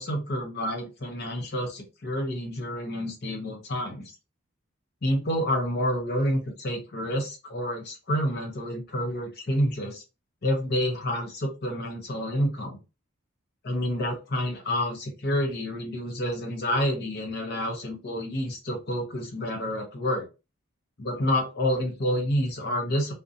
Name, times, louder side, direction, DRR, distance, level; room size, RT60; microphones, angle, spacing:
voice 1, 0.0-4.1 5.0-10.0 10.4-12.8 13.6-20.3 21.0-23.1, equal, 50° left, 2 dB, 0.6 m, -28 dB
2.4 x 2.1 x 2.6 m, 0.29 s
head